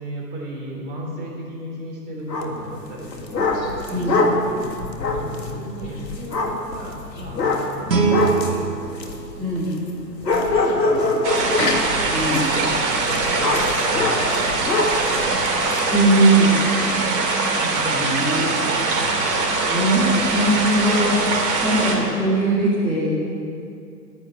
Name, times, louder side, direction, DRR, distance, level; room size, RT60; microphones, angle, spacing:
voice 1, 0.0-4.6 5.0-7.4 7.7-9.2 10.3-11.7 12.1-15.8 18.9-19.5, right 1 dB, 20° right, -2 dB, 3.4 m, -35 dB
sound 1, 2.3-2.6 3.0-9.9 10.2-15.8, left 2 dB, 75° left, 2.0 m, -24 dB
Guitar, 7.9-10.6, right 5 dB, 85° right, 2.1 m, -25 dB
voice 2, 9.4-9.7 12.1-12.4 15.9-16.6 17.6-18.5 19.7-21.2 21.6-23.1, right 2 dB, ahead, -11 dB, 2.3 m, -20 dB
sound 2, 11.2-22.0, right 3 dB, 45° right, 2.9 m, -22 dB
10.5 x 10.5 x 9.5 m, 2.4 s
figure-of-eight pair, 125°, 50 cm